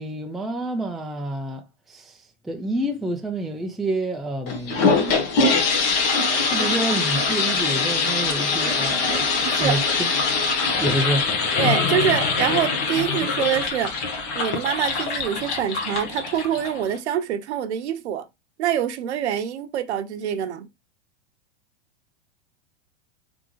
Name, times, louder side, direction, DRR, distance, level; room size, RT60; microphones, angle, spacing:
voice 1, 0.0-5.0 6.5-10.1 10.8-11.3, right 1 dB, ahead, 0.4 m, -28 dB
sound 1, 4.5-17.0, left 4 dB, 45° left, 1.3 m, -23 dB
voice 2, 9.5-9.8 11.6-13.9 14.3-18.2 18.6-20.7, right 10 dB, 80° right, 0.8 m, -25 dB
3.9 x 3.6 x 3.0 m
hypercardioid pair, 125°, 34 cm